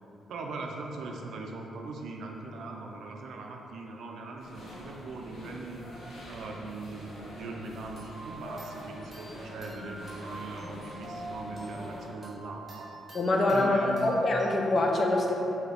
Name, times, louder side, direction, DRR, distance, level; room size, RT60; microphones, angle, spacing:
voice 1, 0.3-5.9 6.3-12.9 13.5-14.2, right 3 dB, 75° right, 1 dB, 0.4 m, -40 dB
sound 1, 4.4-12.1, left 1 dB, 70° left, 0.8 m, -45 dB
sound 2, 8.0-14.5, right 2 dB, 5° left, 1.3 m, -45 dB
voice 2, 13.1-15.3, left 2 dB, 35° left, 0 dB, 0.4 m, -25 dB
3.3 x 2.8 x 3.8 m, 2.9 s
cardioid pair, 145°, 0 cm